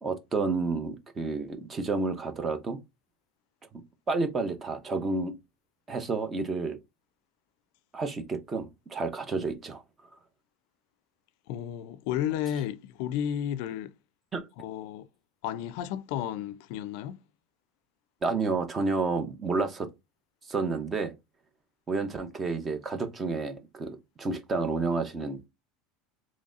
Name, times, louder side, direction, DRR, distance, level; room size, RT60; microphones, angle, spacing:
voice 1, 0.0-2.8 4.1-5.3 5.9-6.8 7.9-9.8 14.3-14.5 18.2-19.9 20.5-21.1 21.9-25.4, right 3 dB, 20° right, 0.7 m, -30 dB
voice 2, 11.5-13.9 14.6-15.1 15.4-17.2, left 10 dB, 65° left, 0.4 m, -32 dB
3.9 x 3.0 x 2.5 m
supercardioid pair, 150°, 0 cm